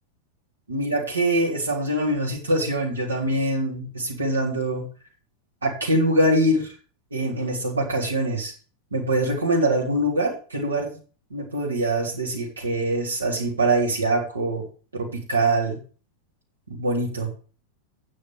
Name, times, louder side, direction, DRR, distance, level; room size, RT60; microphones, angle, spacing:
voice 1, 0.7-4.8 5.6-6.7 7.1-8.5 8.9-11.0 11.3-14.6 14.9-15.8 16.7-17.3, right 1 dB, 75° right, -3 dB, 3.1 m, -24 dB
8.7 x 6.3 x 7.5 m, 0.39 s
figure-of-eight pair, 90°, 0 cm